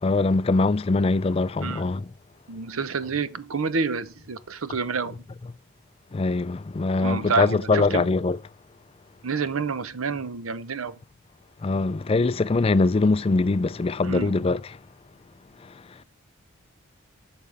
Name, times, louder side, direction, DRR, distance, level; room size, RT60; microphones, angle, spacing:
voice 1, 0.0-2.1 6.1-8.4 11.6-14.8 15.6-16.0, left 3 dB, 25° left, 0.3 m, -23 dB
voice 2, 2.5-5.2 7.0-8.0 9.2-11.0 14.0-14.4, right 5 dB, 80° right, 0.8 m, -28 dB
8.7 x 6.8 x 3.4 m
head